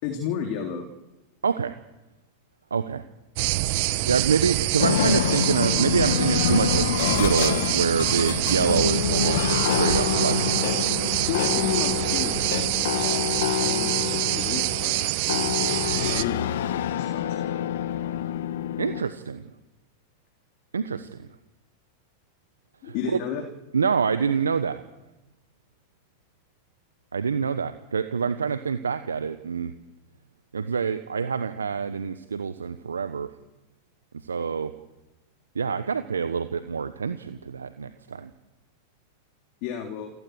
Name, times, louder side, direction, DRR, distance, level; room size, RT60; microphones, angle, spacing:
voice 1, 0.0-0.9 11.3-13.2 13.6-17.6 22.8-23.4 39.6-40.1, left 8 dB, 55° left, 3 dB, 3.4 m, -33 dB
voice 2, 1.4-1.7 2.7-3.0 3.9-10.6 18.8-19.4 20.7-21.3 22.8-22.9 23.7-24.8 27.1-29.7 30.5-33.3 34.2-34.7 35.5-38.3, right 6 dB, 85° right, 11 dB, 1.1 m, -26 dB
sound 1, 3.4-16.2, right 18 dB, 55° right, 1.1 m, -26 dB
sound 2, 4.8-19.0, left 11 dB, 70° left, 1.2 m, -27 dB
28.5 x 15.5 x 8.0 m, 1.0 s
hypercardioid pair, 95°, 0 cm